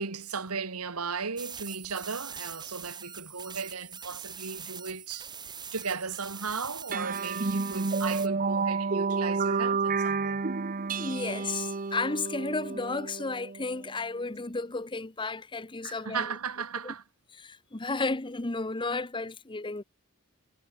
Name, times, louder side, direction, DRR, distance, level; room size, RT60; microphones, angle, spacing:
voice 1, 0.0-5.3 5.7-10.4 15.8-17.0, right 5 dB, 80° right, 1.7 m, -36 dB
sound 1, 1.4-8.3, right 7 dB, 20° right, 1.2 m, -43 dB
sound 2, 6.9-13.8, right 4 dB, 40° right, 0.7 m, -30 dB
voice 2, 11.0-16.4 16.8-16.9 17.4-19.8, left 3 dB, 20° left, 0.9 m, -33 dB
head